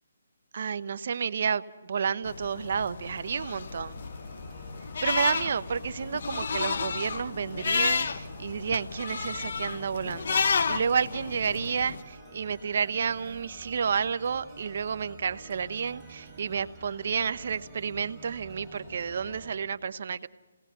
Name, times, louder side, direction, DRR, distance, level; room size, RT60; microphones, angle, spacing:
voice 1, 0.5-1.6 1.9-4.0 5.0-20.3, right 6 dB, 55° right, 14 dB, 0.7 m, -30 dB
sound 1, 2.3-12.0, left 5 dB, 55° left, 0.9 m, -32 dB
sound 2, 3.5-19.5, right 2 dB, ahead, 6.9 m, -49 dB
28.5 x 18.0 x 5.7 m, 1.1 s
hypercardioid pair, 160°, 0 cm